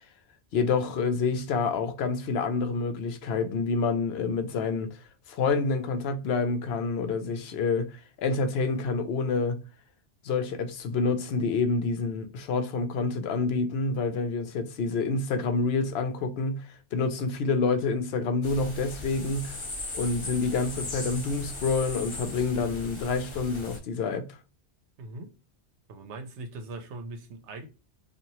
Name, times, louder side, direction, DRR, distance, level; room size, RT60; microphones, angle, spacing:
voice 1, 0.5-4.9 5.3-9.6 10.2-19.6 19.9-24.3, left 4 dB, 70° left, 0.8 m, -28 dB
sound 1, 18.4-23.8, left 2 dB, 30° left, 0.7 m, -38 dB
voice 2, 25.0-25.3 25.9-27.7, right 2 dB, 90° right, 0.9 m, -40 dB
2.7 x 2.4 x 2.9 m
omnidirectional pair, 1.1 m